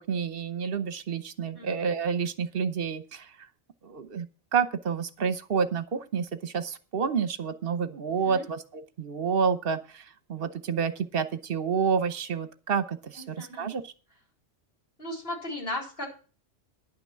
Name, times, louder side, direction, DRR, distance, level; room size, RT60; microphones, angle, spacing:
voice 1, 0.0-3.2 3.8-4.3 4.5-9.8 10.3-13.8, right 6 dB, 55° right, 11 dB, 1.1 m, -29 dB
voice 2, 13.2-13.7 15.0-16.1, left 1 dB, 55° left, -1 dB, 4.3 m, -36 dB
11.0 x 5.9 x 7.8 m, 0.37 s
omnidirectional pair, 1.2 m